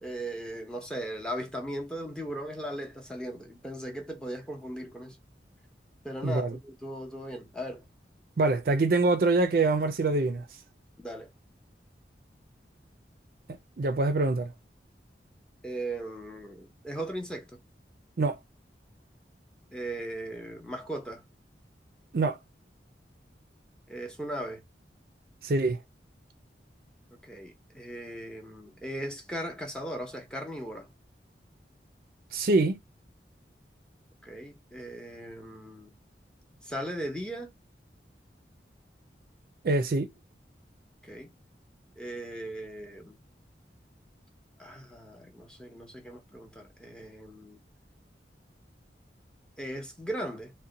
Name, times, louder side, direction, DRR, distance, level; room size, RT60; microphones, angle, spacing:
voice 1, 0.0-5.2 6.0-7.8 11.0-11.3 15.6-17.6 19.7-21.2 23.9-24.6 27.2-30.9 34.2-35.9 36.6-37.5 41.0-41.3 42.0-43.2 44.6-47.6 49.6-50.5, right 1 dB, 5° left, 0.7 m, -38 dB
voice 2, 6.2-6.6 8.4-10.4 13.8-14.5 18.2-18.4 22.1-22.4 25.4-25.8 32.3-32.8 39.6-40.1, right 3 dB, 55° right, 0.4 m, -25 dB
2.7 x 2.1 x 3.8 m
head